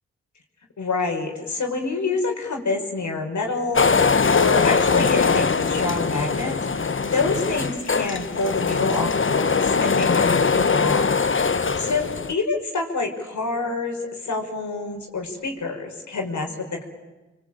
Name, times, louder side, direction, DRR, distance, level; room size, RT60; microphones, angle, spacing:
voice 1, 0.8-16.8, left 3 dB, 70° left, 2 dB, 5.3 m, -27 dB
sound 1, 3.7-12.3, left 5 dB, 40° left, 1.3 m, -21 dB
27.5 x 24.0 x 9.0 m, 1.1 s
cardioid pair, 45°, 30 cm